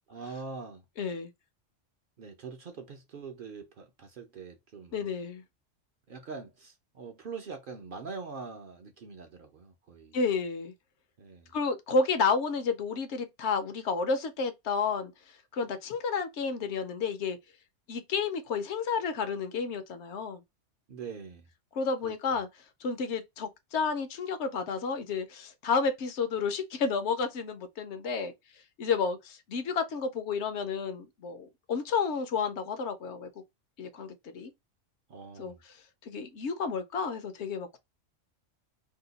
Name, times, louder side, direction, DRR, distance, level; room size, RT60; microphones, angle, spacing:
voice 1, 0.1-0.8 2.2-5.0 6.1-10.2 11.2-11.5 20.9-21.5 22.0-22.4 35.1-35.6, right 5 dB, 60° right, 0.6 m, -43 dB
voice 2, 1.0-1.3 4.9-5.4 10.1-10.7 11.5-15.1 15.5-17.4 17.9-20.4 21.7-22.5 22.8-28.3 28.8-33.3 33.8-34.5 35.4-35.5 36.0-37.8, left 5 dB, 70° left, 0.9 m, -31 dB
2.8 x 2.2 x 3.8 m
omnidirectional pair, 1.3 m